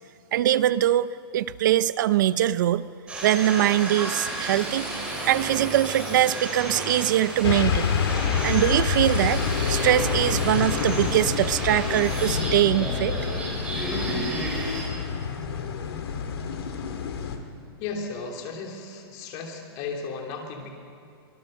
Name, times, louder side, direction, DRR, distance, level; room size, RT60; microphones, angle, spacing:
voice 1, 0.3-2.9 3.2-4.9 5.2-8.0 8.4-9.4 9.7-13.2, right 12 dB, 50° right, 16 dB, 0.7 m, -22 dB
sound 1, 3.1-14.8, right 1 dB, 10° right, 5.0 m, -32 dB
sound 2, 7.4-17.4, left 6 dB, 80° left, 2.6 m, -27 dB
voice 2, 17.8-20.7, left 4 dB, 30° left, 2 dB, 3.2 m, -35 dB
24.5 x 21.0 x 6.6 m, 2.5 s
supercardioid pair, 170°, 13 cm